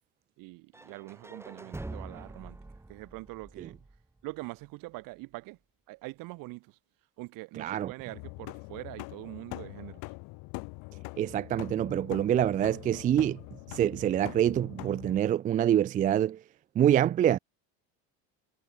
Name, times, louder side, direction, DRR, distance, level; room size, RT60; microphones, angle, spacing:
voice 1, 0.4-2.6 2.9-3.8 4.2-5.6 5.9-6.8 7.2-10.0, right 23 dB, 60° right, 1.9 m, -43 dB
sound 1, 0.7-4.7, right 2 dB, 5° right, 3.0 m, -45 dB
voice 2, 7.6-7.9 11.2-13.4 13.7-16.4 16.8-17.4, right 10 dB, 25° right, 0.4 m, -26 dB
sound 2, 8.1-15.2, left 27 dB, 75° left, 5.7 m, -43 dB
cardioid pair, 175°, 37 cm